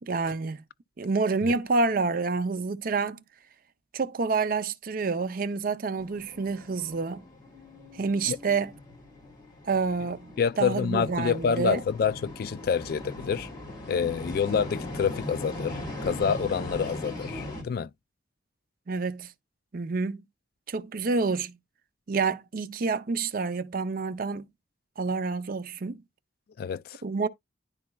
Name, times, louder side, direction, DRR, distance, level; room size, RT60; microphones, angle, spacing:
voice 1, 0.0-0.6 1.0-3.2 3.9-7.2 7.9-8.7 9.6-11.8 18.9-19.3 19.7-20.2 20.7-21.6 22.1-24.5 25.0-26.0 27.0-27.3, right 4 dB, 50° right, 0.5 m, -28 dB
sound 1, 6.0-17.6, left 1 dB, 25° left, 3.3 m, -39 dB
voice 2, 10.4-13.5 13.9-17.9 26.6-27.0, left 6 dB, 55° left, 0.3 m, -27 dB
10.5 x 4.1 x 2.2 m
head